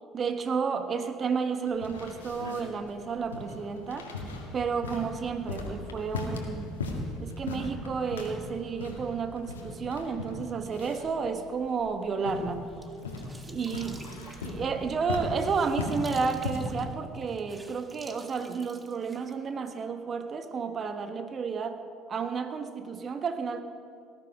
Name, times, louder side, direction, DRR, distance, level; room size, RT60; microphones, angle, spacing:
voice 1, 0.1-4.1 4.5-6.7 7.2-12.7 13.5-14.0 14.4-23.6, right 5 dB, 40° right, 8 dB, 1.5 m, -31 dB
sound 1, 1.7-16.8, left 2 dB, 85° left, 2.0 m, -38 dB
sound 2, 12.5-19.8, right 2 dB, 15° right, 1.9 m, -51 dB
19.0 x 14.0 x 5.1 m, 2.3 s
hypercardioid pair, 60°, 0 cm